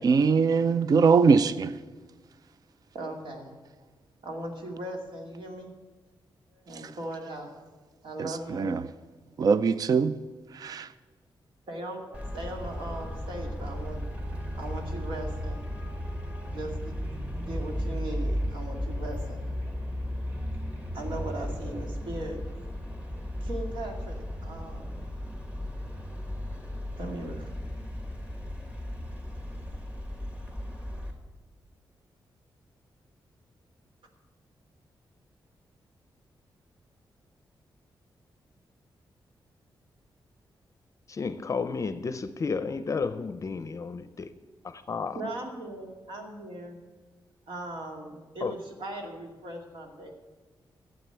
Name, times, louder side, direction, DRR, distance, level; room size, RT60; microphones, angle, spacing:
voice 1, 0.0-1.7 8.2-8.8 9.4-10.2 10.5-10.9, right 5 dB, 50° right, 0.4 m, -22 dB
voice 2, 2.9-3.5 4.2-5.7 6.5-7.6 8.0-8.7 11.7-14.0 14.6-15.6 16.3-19.5 19.9-20.1 20.4-20.5 20.9-22.7 23.4-25.1 26.7-27.5 45.1-46.8 47.5-50.1, right 1 dB, 75° right, 2.3 m, -39 dB
Traffic noise roadway noise, 12.1-31.1, equal, 15° right, 1.5 m, -35 dB
voice 3, 41.1-44.3 44.6-45.2 48.4-48.5, left 4 dB, 40° left, 0.5 m, -32 dB
12.5 x 7.8 x 8.0 m
wide cardioid pair, 160°, 8 cm